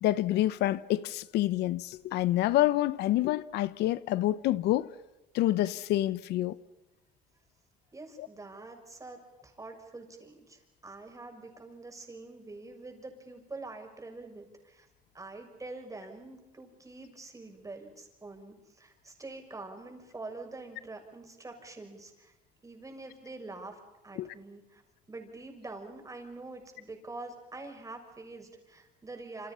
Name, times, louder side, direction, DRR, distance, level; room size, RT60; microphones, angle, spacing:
voice 1, 0.0-4.9 5.3-6.6 8.2-8.3 24.2-24.3, left 14 dB, 85° left, 0.9 m, -27 dB
voice 2, 7.9-14.9 15.1-22.3 22.6-24.8 25.1-29.5, right 3 dB, 20° right, 6.6 m, -45 dB
28.5 x 27.5 x 5.7 m
cardioid pair, 110°, 17 cm